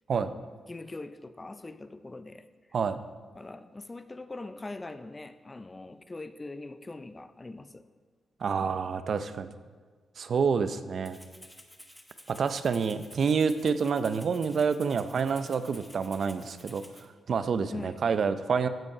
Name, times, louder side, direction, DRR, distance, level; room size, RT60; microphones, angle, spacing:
voice 1, 0.1-2.5 3.3-7.8 17.7-18.0, left 2 dB, 25° left, 12 dB, 0.4 m, -42 dB
voice 2, 8.4-9.5 10.2-11.2 12.3-16.8 17.3-18.7, right 5 dB, 60° right, 12 dB, 0.5 m, -28 dB
Rattle (instrument), 11.1-17.1, equal, 5° left, 1.1 m, -52 dB
15.0 x 5.3 x 4.9 m, 1.5 s
cardioid pair, 85°, 0 cm